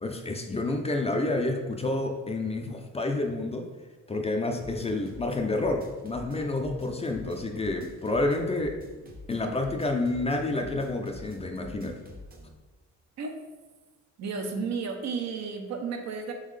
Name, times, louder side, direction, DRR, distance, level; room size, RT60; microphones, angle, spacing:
voice 1, 0.0-3.7 4.1-8.8 9.3-12.0, left 2 dB, 20° left, 3 dB, 0.4 m, -29 dB
sound 1, 4.6-12.6, left 1 dB, 30° right, 0.7 m, -47 dB
voice 2, 14.2-16.3, right 5 dB, 65° right, 4 dB, 0.6 m, -32 dB
3.9 x 3.1 x 3.2 m, 1.2 s
cardioid pair, 90°, 30 cm